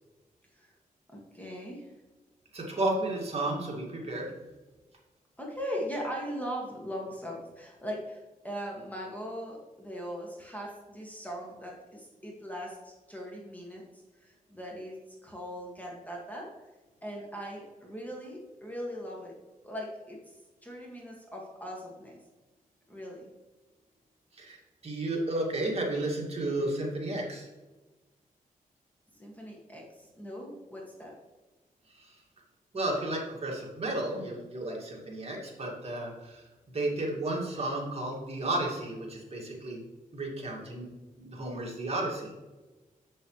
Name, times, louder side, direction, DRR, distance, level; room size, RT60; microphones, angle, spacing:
voice 1, 1.1-1.9 5.4-15.0 15.2-16.5 17.0-19.3 19.6-20.2 20.6-22.2 22.9-23.3 29.1-31.1, equal, 10° left, -2 dB, 2.0 m, -40 dB
voice 2, 2.5-4.3 24.3-27.5 31.9-32.2 32.7-36.5 36.7-39.8 40.1-40.9 41.2-42.3, right 1 dB, 45° right, -2 dB, 2.3 m, -33 dB
7.7 x 7.4 x 3.2 m, 1.2 s
cardioid pair, 85°, 15 cm